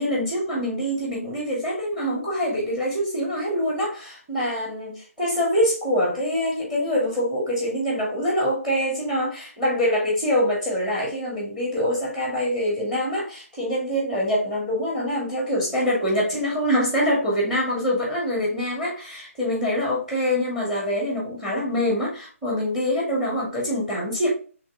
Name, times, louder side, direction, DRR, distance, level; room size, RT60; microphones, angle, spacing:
voice 1, 0.0-24.3, equal, 5° right, 1.8 m, -25 dB
5.0 x 3.4 x 2.7 m
figure-of-eight pair, 155°, 8 cm